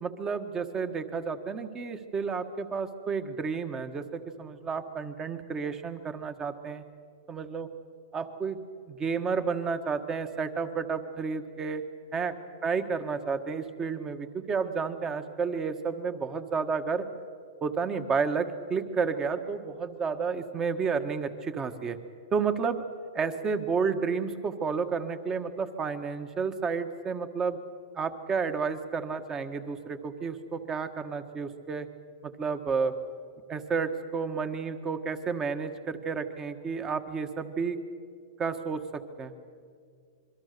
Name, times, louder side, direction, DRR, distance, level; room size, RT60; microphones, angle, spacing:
voice 1, 0.0-6.8 7.3-7.7 8.1-11.8 12.1-12.3 12.6-17.0 17.6-22.0 22.3-22.8 23.1-27.6 27.9-31.9 32.2-32.9 33.5-37.8 38.4-38.8 39.2-39.3, right 5 dB, 20° right, 9 dB, 1.5 m, -31 dB
26.5 x 22.5 x 6.8 m, 2.2 s
hypercardioid pair, 135°, 3 cm